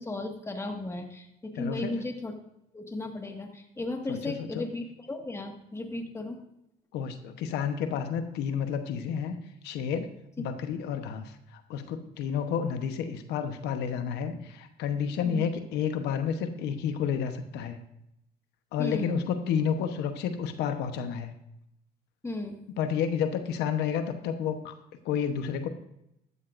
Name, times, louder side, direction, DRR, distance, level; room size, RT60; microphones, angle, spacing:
voice 1, 0.0-2.3 2.7-6.4 15.2-15.5 18.8-19.1 22.2-22.6, left 2 dB, 15° left, 3 dB, 1.7 m, -35 dB
voice 2, 1.6-2.0 4.1-4.6 6.9-9.4 9.6-10.1 10.4-17.8 18.7-21.3 22.8-24.7 25.0-25.7, left 7 dB, 85° left, 8 dB, 1.0 m, -30 dB
13.5 x 12.5 x 2.6 m, 0.81 s
cardioid pair, 110°, 17 cm